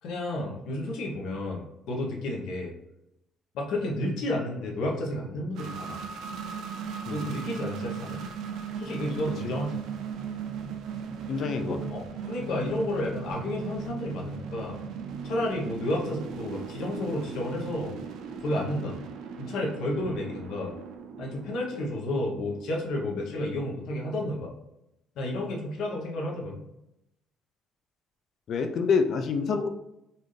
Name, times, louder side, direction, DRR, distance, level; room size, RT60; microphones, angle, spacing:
voice 1, 0.0-2.7 3.5-6.0 7.1-8.2 8.8-9.8 11.9-14.8 15.2-18.0 18.4-19.0 19.4-20.7 21.2-24.5 25.2-26.6, left 1 dB, 75° left, -1 dB, 1.0 m, -31 dB
sound 1, 5.5-24.0, right 6 dB, 75° right, 0.4 m, -38 dB
voice 2, 11.3-11.9 28.5-29.7, left 5 dB, 50° left, 7 dB, 0.4 m, -27 dB
4.0 x 2.6 x 3.2 m, 0.86 s
cardioid pair, 125°, 0 cm